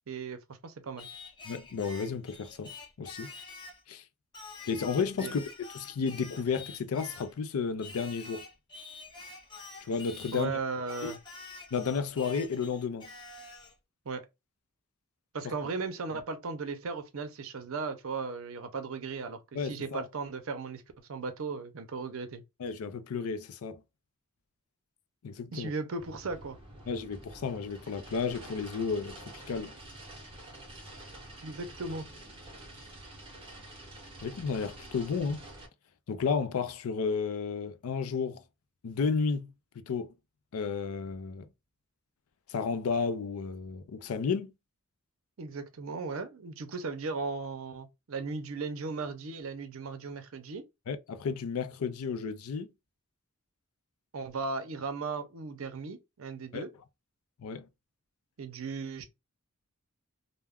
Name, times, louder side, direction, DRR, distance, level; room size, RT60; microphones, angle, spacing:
voice 1, 0.1-1.1 5.2-5.3 10.3-11.2 14.1-14.2 15.3-20.8 21.1-22.4 25.5-26.6 31.4-32.1 45.4-50.6 54.1-56.7 58.4-59.0, right 4 dB, 65° right, 0.5 m, -36 dB
Singing, 1.0-3.8 4.3-7.4 7.8-10.5 10.9-13.8, left 3 dB, 20° left, 0.5 m, -47 dB
voice 2, 1.5-2.7 3.0-3.3 3.9-4.0 4.7-5.5 5.7-8.4 9.8-10.5 11.0-11.1 11.7-13.1 19.5-20.0 22.6-23.8 25.2-25.7 26.9-29.7 34.2-35.4 36.1-38.4 38.8-40.1 40.5-41.5 42.5-44.5 50.9-52.7 56.5-56.6 57.4-57.7, left 5 dB, 80° left, 0.4 m, -32 dB
sound 1, 26.0-35.7, right 1 dB, 25° right, 0.6 m, -48 dB
2.3 x 2.1 x 3.4 m
head